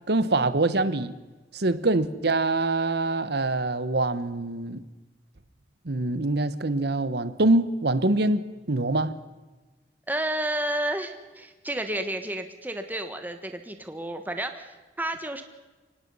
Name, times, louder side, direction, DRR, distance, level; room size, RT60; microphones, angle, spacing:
voice 1, 0.1-1.1 1.5-4.8 5.8-9.2, right 2 dB, 65° right, 1.1 m, -24 dB
voice 2, 10.1-15.4, right 1 dB, 10° right, 1.4 m, -31 dB
24.5 x 19.0 x 5.6 m
head